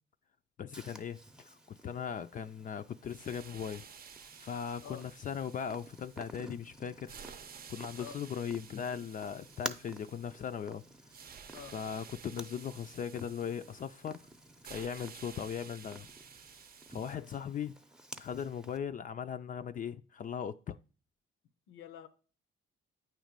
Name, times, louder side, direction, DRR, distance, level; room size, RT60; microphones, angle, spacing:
voice 1, 0.6-3.9 4.4-7.2 7.7-10.8 11.6-14.3 14.7-16.1 16.9-17.7 18.2-20.8, left 8 dB, 40° left, 0.4 m, -39 dB
Purr, 0.7-18.8, right 1 dB, 5° right, 0.6 m, -51 dB
sound 1, 3.0-17.2, right 7 dB, 50° right, 0.6 m, -53 dB
voice 2, 21.7-22.1, left 9 dB, 90° left, 0.7 m, -47 dB
8.9 x 3.1 x 5.1 m
cardioid pair, 90°, 20 cm